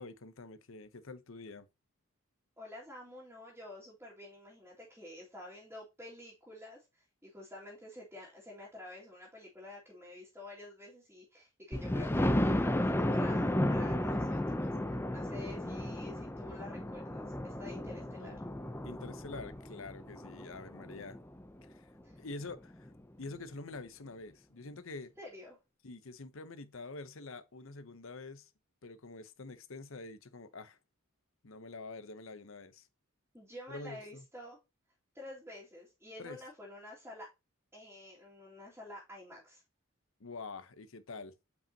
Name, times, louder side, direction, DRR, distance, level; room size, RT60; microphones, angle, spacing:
voice 1, 0.0-1.7 18.0-18.4 18.8-21.2 21.6-22.9 23.2-25.1 25.8-28.5 28.8-30.8 31.4-32.9 33.7-34.2 36.2-36.4 40.2-41.3, left 3 dB, 70° left, 0.8 m, -46 dB
voice 2, 2.6-18.5 22.0-22.2 25.2-25.6 33.3-34.6 35.1-37.3 37.7-39.6, left 1 dB, 10° right, 2.4 m, -49 dB
Thunder, 11.7-21.4 22.0-22.1 22.5-22.6 22.9-23.0, left 1 dB, 10° left, 0.5 m, -33 dB
8.1 x 5.2 x 2.8 m
head